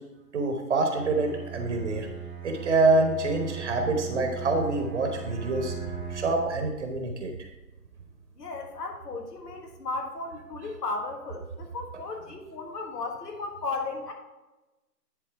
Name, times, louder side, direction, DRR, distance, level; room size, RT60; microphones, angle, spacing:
voice 1, 0.3-2.1 2.4-7.3, right 3 dB, 45° right, 3 dB, 1.1 m, -26 dB
Bowed string instrument, 0.9-6.6, right 6 dB, 5° right, 1.1 m, -38 dB
voice 2, 8.4-14.1, left 3 dB, 75° left, 2 dB, 1.4 m, -35 dB
10.0 x 3.9 x 4.5 m, 1.1 s
hypercardioid pair, 155°, 48 cm